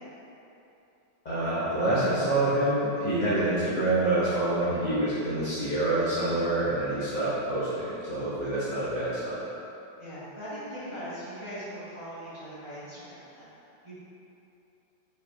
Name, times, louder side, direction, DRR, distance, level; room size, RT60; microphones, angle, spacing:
voice 1, 1.2-9.4, right 1 dB, 40° left, -12 dB, 0.6 m, -27 dB
voice 2, 10.0-13.5 13.8-14.0, equal, 20° right, -12 dB, 1.0 m, -40 dB
4.7 x 3.1 x 3.3 m, 2.9 s
omnidirectional pair, 1.9 m